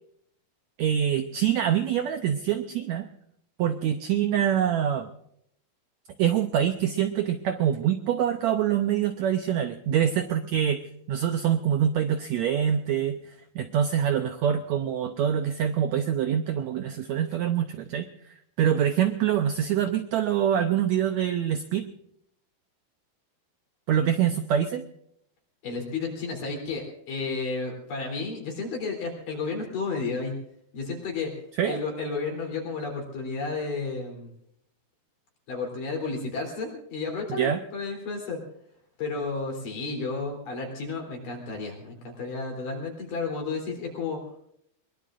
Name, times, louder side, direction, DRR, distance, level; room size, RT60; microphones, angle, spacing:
voice 1, 0.8-3.1 3.6-5.1 6.2-10.8 11.1-21.9 23.9-24.8 31.6-31.8 37.3-37.6, right 9 dB, 85° right, 7 dB, 1.6 m, -25 dB
voice 2, 25.6-30.4 30.7-31.3 31.6-34.3 35.5-38.4 39.0-44.2, left 4 dB, 70° left, 0 dB, 5.1 m, -32 dB
22.5 x 21.5 x 2.5 m, 0.71 s
omnidirectional pair, 4.1 m